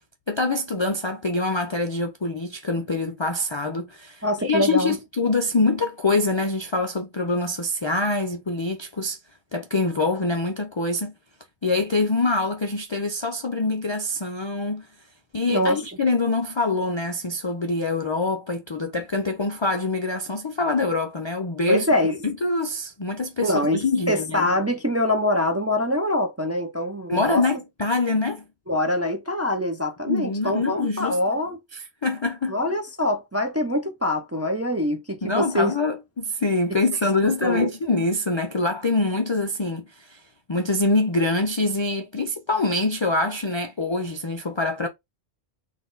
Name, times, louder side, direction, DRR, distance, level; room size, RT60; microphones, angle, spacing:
voice 1, 0.3-9.2 9.5-11.1 11.6-14.9 15.3-21.9 22.2-24.5 27.1-28.4 30.1-31.2 31.7-32.5 35.2-40.2 40.5-44.9, left 3 dB, 45° left, 0.4 m, -25 dB
voice 2, 4.2-5.0 15.5-15.8 21.7-22.2 23.4-27.4 28.7-31.6 32.5-35.7 37.2-37.7, left 1 dB, 20° right, 0.4 m, -24 dB
4.0 x 2.6 x 3.8 m
omnidirectional pair, 1.1 m